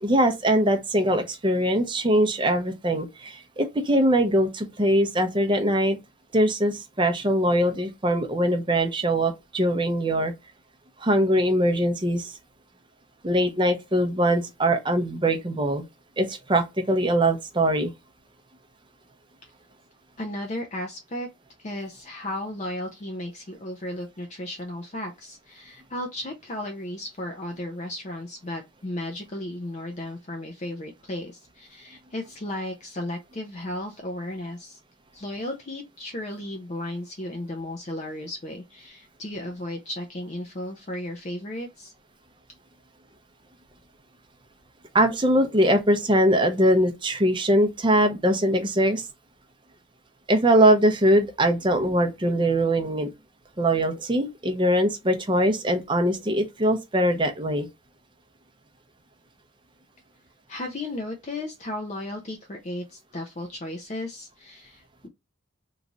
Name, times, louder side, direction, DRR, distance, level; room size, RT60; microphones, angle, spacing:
voice 1, 0.0-6.0 6.3-10.3 11.0-12.3 13.2-15.8 16.2-17.9 44.9-49.0 50.3-53.1 53.6-57.7, right 1 dB, 25° right, 0.6 m, -22 dB
voice 2, 20.2-21.3 21.6-34.8 35.1-41.9 60.5-65.1, left 1 dB, 35° left, 0.5 m, -35 dB
3.1 x 2.4 x 3.8 m
head